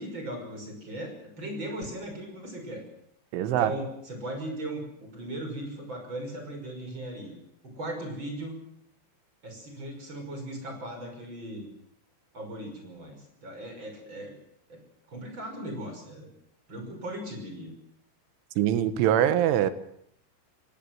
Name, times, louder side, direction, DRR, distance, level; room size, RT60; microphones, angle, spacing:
voice 1, 0.0-2.8 3.5-7.4 7.6-8.6 9.4-11.7 12.3-14.3 14.7-14.8 15.1-16.3 16.7-17.7, right 1 dB, 25° right, 4 dB, 6.2 m, -38 dB
voice 2, 3.3-3.7 18.6-19.7, right 11 dB, 80° right, 12 dB, 3.7 m, -23 dB
26.0 x 17.5 x 7.9 m, 0.71 s
omnidirectional pair, 5.6 m